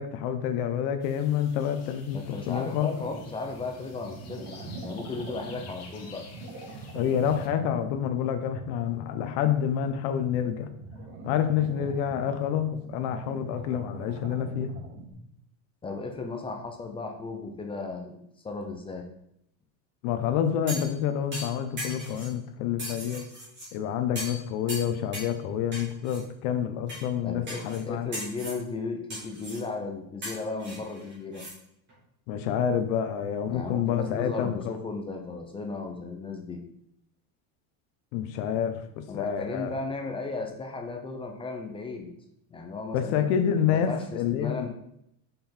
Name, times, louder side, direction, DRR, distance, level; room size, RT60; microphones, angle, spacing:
voice 1, 0.0-2.2 2.5-2.9 6.9-10.7 11.2-14.7 20.0-23.3 23.7-28.1 32.3-34.8 38.1-39.7 42.9-44.7, left 9 dB, 70° left, 8 dB, 0.9 m, -28 dB
sound 1, 1.0-7.5, left 4 dB, 35° left, 1.2 m, -51 dB
voice 2, 2.1-6.3 15.8-19.1 27.2-31.4 33.5-36.6 39.1-42.1 42.5-43.2 43.7-44.7, left 3 dB, 15° left, 3 dB, 0.4 m, -35 dB
under alien ocean, 2.6-15.1, right 2 dB, 85° right, 2.2 m, -43 dB
sound 2, 20.7-21.0 21.3-22.3 22.8-23.7 24.2-24.4 24.7-25.3 25.7-26.2 26.9-27.0 27.5-27.8 28.1-28.6 29.1-29.6 30.2-31.5 31.9-32.0, equal, 25° right, 2.9 m, -38 dB
5.8 x 5.4 x 4.3 m, 0.75 s
cardioid pair, 165°, 44 cm